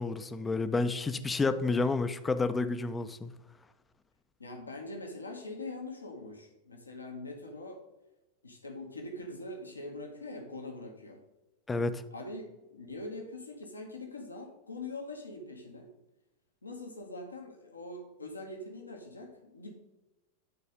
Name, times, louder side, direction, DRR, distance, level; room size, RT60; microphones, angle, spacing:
voice 1, 0.0-3.3 11.7-12.0, left 3 dB, 15° left, 11 dB, 0.5 m, -30 dB
voice 2, 4.4-7.8 8.4-11.2 12.1-15.9 16.6-19.7, left 2 dB, 80° left, 2 dB, 1.1 m, -43 dB
9.5 x 4.1 x 5.0 m, 1.0 s
figure-of-eight pair, 90°, 0 cm